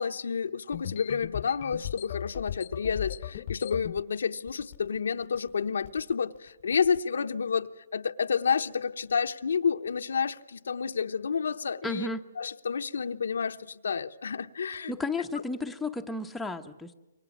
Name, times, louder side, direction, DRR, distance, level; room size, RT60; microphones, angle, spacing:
voice 1, 0.0-12.1 12.4-14.9, left 6 dB, 80° left, 1.0 m, -30 dB
sound 1, 0.7-4.0 4.5-5.0 5.2-5.5 5.8-6.1 6.7-7.0, left 11 dB, 40° left, 0.9 m, -38 dB
voice 2, 11.8-12.2 14.9-16.9, left 3 dB, 5° left, 1.0 m, -33 dB
28.5 x 24.0 x 7.3 m
hypercardioid pair, 155°, 0 cm